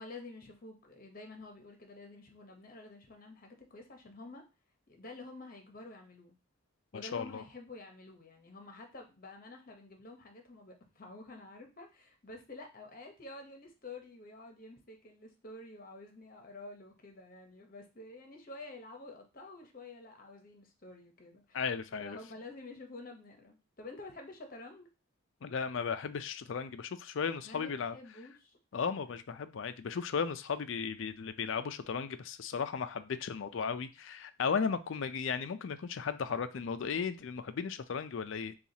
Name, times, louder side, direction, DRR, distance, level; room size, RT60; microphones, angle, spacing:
voice 1, 0.0-4.4 4.9-6.4 6.9-21.6 22.0-24.9 27.4-28.6, left 2 dB, 40° left, 3 dB, 0.9 m, -49 dB
voice 2, 6.9-7.4 21.5-22.2 25.4-28.0 28.7-38.5, left 6 dB, 60° left, 11 dB, 0.4 m, -35 dB
7.0 x 2.4 x 2.8 m, 0.29 s
head